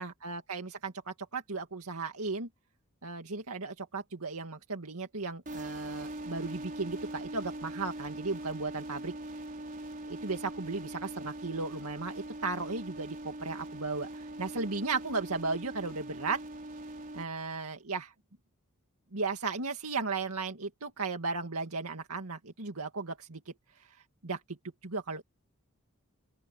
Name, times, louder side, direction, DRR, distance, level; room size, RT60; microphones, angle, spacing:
voice 1, 0.0-2.5 3.0-9.1 10.1-16.4 17.1-18.1 19.1-23.4 24.2-24.6 24.8-25.2, right 4 dB, 85° right, 2.1 m, -35 dB
sound 1, 5.5-17.2, right 1 dB, 40° right, 4.5 m, -42 dB
open air
head